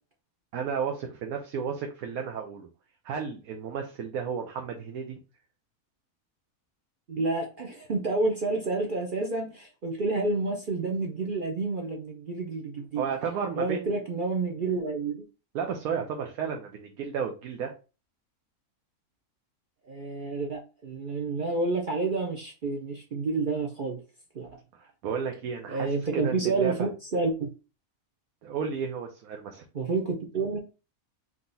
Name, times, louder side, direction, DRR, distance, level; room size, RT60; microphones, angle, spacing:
voice 1, 0.5-2.7 3.0-5.2 13.0-13.9 15.5-17.7 24.7-26.9 28.4-29.6, right 6 dB, 80° right, 1.2 m, -33 dB
voice 2, 7.1-13.0 13.6-15.2 19.9-24.0 24.3-24.6 25.7-27.5 29.7-30.6, right 3 dB, 45° right, 0.7 m, -29 dB
3.8 x 2.9 x 3.9 m
omnidirectional pair, 1.5 m